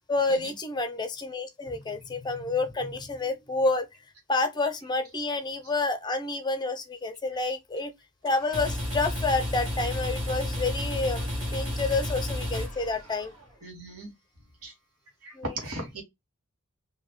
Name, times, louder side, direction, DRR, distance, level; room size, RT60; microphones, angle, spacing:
voice 1, 0.1-3.9 4.3-7.9 8.2-13.3 15.3-15.4, left 3 dB, 20° left, 0.5 m, -29 dB
sound 1, 8.3-13.4, left 1 dB, 60° right, 1.9 m, -32 dB
voice 2, 13.6-14.1 14.6-14.7 15.2-16.0, right 1 dB, 85° right, 1.5 m, -37 dB
3.9 x 2.7 x 3.0 m
head